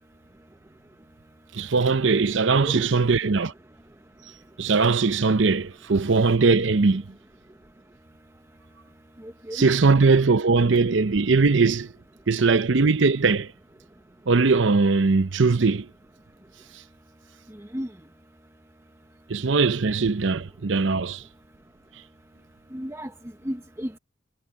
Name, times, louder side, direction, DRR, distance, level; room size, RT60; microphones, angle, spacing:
voice 1, 1.5-3.5 4.6-7.0 9.5-11.9 12.3-13.5 14.3-15.9 19.3-21.2, right 4 dB, 70° right, 0.7 m, -20 dB
voice 2, 9.2-9.7 17.7-17.9 22.7-23.1 23.4-24.0, equal, 15° right, 0.9 m, -33 dB
head